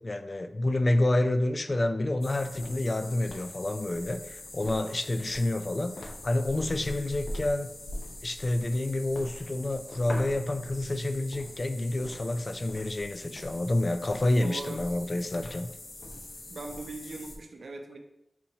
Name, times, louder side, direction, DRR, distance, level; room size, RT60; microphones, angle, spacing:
voice 1, 0.0-7.7 8.2-15.7, left 1 dB, 40° left, 9 dB, 0.3 m, -28 dB
sound 1, 2.2-17.4, left 1 dB, 85° left, 0.7 m, -42 dB
voice 2, 14.4-14.8 16.5-18.0, right 2 dB, 80° right, 4 dB, 0.5 m, -39 dB
4.2 x 4.2 x 2.8 m, 0.84 s
wide cardioid pair, 75°, 0 cm